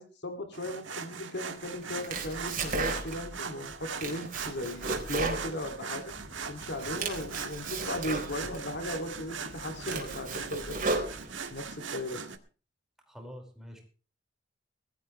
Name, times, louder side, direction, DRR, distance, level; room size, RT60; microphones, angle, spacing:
voice 1, 0.0-6.1 6.5-11.0 11.5-12.2, left 1 dB, 60° left, 5 dB, 2.6 m, -37 dB
sound 1, 0.5-12.4, right 5 dB, 75° right, 1.8 m, -40 dB
Domestic sounds home sounds, 1.8-3.4 3.7-6.2 6.6-8.6 9.2-9.3 9.7-11.6, right 3 dB, 45° right, 4.3 m, -35 dB
sound 2, 6.1-11.3, left 1 dB, 85° left, 7.4 m, -52 dB
voice 2, 13.1-13.8, equal, 5° right, 1 dB, 5.1 m, -46 dB
21.0 x 14.0 x 3.2 m, 0.37 s
head